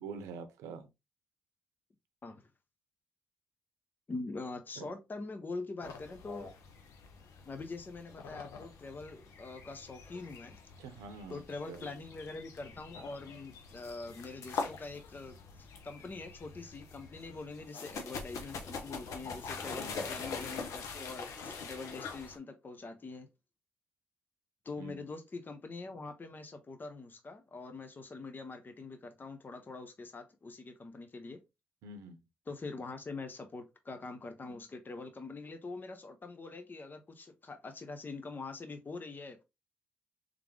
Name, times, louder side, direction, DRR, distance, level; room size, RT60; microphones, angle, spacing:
voice 1, 0.0-0.9 4.8-4.9 10.8-12.0 19.8-20.1 24.8-25.0 31.8-32.2, right 4 dB, 80° right, 0.7 m, -46 dB
voice 2, 4.1-6.5 7.5-10.6 11.3-23.3 24.6-31.4 32.5-39.4, left 3 dB, 35° left, 0.9 m, -44 dB
sound 1, 5.8-22.4, left 5 dB, 70° left, 0.9 m, -44 dB
3.7 x 3.4 x 3.3 m
hypercardioid pair, 45°, 5 cm